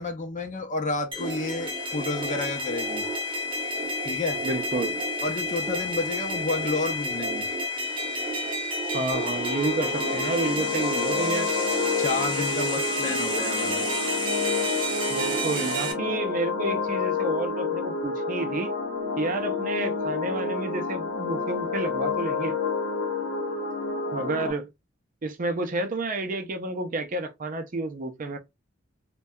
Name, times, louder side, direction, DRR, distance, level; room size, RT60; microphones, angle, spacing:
voice 1, 0.0-3.1 4.0-4.4 5.2-7.5 12.0-13.8, left 3 dB, 40° left, 0.5 m, -30 dB
sound 1, 1.1-15.9, equal, 25° right, 0.8 m, -30 dB
voice 2, 4.4-5.0 8.9-11.5 15.1-18.7 19.2-22.6 24.1-24.7 25.2-28.4, right 2 dB, 45° right, 0.5 m, -30 dB
sound 2, 9.1-24.5, left 4 dB, 75° left, 0.8 m, -29 dB
2.7 x 2.2 x 2.2 m
head